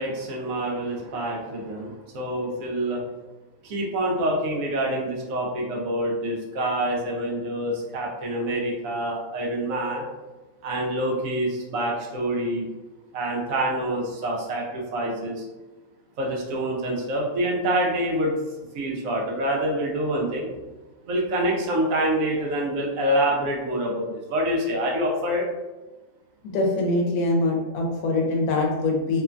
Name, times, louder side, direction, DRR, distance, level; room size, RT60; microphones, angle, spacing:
voice 1, 0.0-3.0 3.6-10.0 10.6-12.7 13.1-15.5 16.2-18.4 18.7-20.5 21.1-25.5, right 1 dB, 70° right, -1 dB, 1.0 m, -26 dB
voice 2, 26.4-29.2, left 2 dB, 80° left, -1 dB, 1.1 m, -23 dB
3.0 x 2.1 x 2.4 m, 1.1 s
omnidirectional pair, 1.6 m